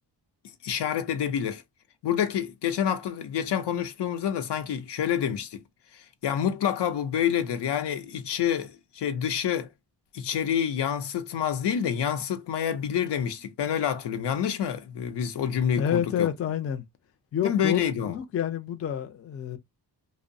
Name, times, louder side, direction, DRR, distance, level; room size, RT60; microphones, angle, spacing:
voice 1, 0.6-1.6 2.0-5.6 5.9-9.7 10.1-16.3 17.4-18.2, left 9 dB, 80° left, 0.6 m, -28 dB
voice 2, 15.8-16.8 17.3-19.6, left 9 dB, 35° left, 0.4 m, -28 dB
2.6 x 2.0 x 2.5 m
wide cardioid pair, 130°, 40 cm